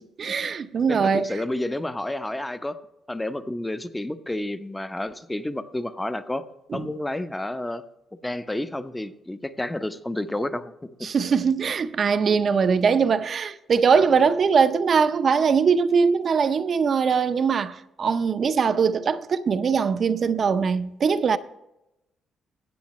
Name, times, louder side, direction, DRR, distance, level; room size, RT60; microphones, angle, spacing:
voice 1, 0.2-1.3 6.7-6.9 11.0-21.4, right 6 dB, 50° right, 0.6 m, -21 dB
voice 2, 0.9-2.8 3.1-6.4 6.7-7.8 8.2-10.7, left 1 dB, 10° left, 0.7 m, -30 dB
14.5 x 8.5 x 3.1 m
cardioid pair, 90°, 0 cm